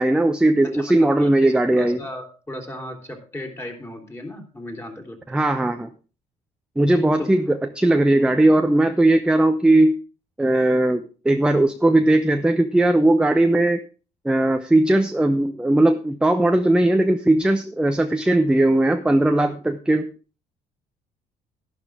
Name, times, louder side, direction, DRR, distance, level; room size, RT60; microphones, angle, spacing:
voice 1, 0.0-2.0 5.3-5.9 6.8-10.0 10.4-13.8 14.2-20.1, right 1 dB, 5° right, 7 dB, 0.8 m, -18 dB
voice 2, 0.8-5.4 7.2-7.3, left 1 dB, 15° left, 3 dB, 3.4 m, -36 dB
11.5 x 11.5 x 3.6 m, 0.34 s
cardioid pair, 110°, 17 cm